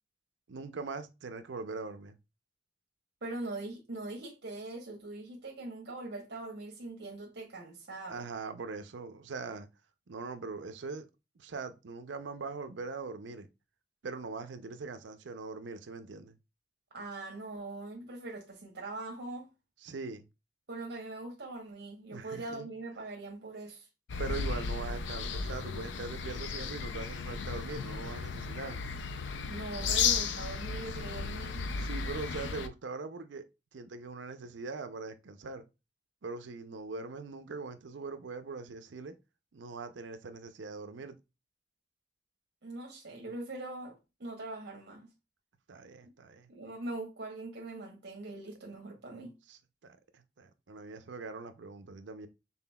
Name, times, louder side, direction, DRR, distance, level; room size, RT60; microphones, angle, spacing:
voice 1, 0.5-2.2 8.1-9.7 10.1-11.0 11.4-13.5 14.0-16.3 19.8-20.2 22.1-22.7 24.2-28.8 31.8-33.5 33.7-35.7 36.2-39.1 39.5-41.1 45.7-46.5 49.5-52.3, right 4 dB, 80° right, 0.5 m, -41 dB
voice 2, 3.2-8.2 16.9-19.5 20.7-23.9 29.4-31.7 42.6-45.1 46.0-46.1 46.5-49.3, right 2 dB, 65° right, 1.0 m, -42 dB
sound 1, 24.1-32.7, left 5 dB, 80° left, 0.4 m, -34 dB
5.8 x 3.8 x 2.2 m
head